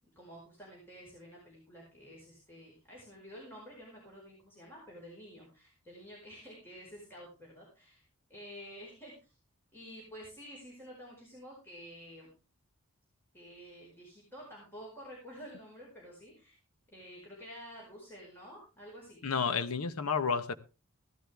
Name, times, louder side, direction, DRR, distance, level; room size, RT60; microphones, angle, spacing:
voice 1, 0.1-8.0 8.3-9.3 9.7-12.3 13.3-16.6 16.9-19.3, equal, 10° left, 4.7 m, -50 dB
voice 2, 19.2-20.5, left 5 dB, 85° left, 0.9 m, -31 dB
15.5 x 12.5 x 3.4 m
head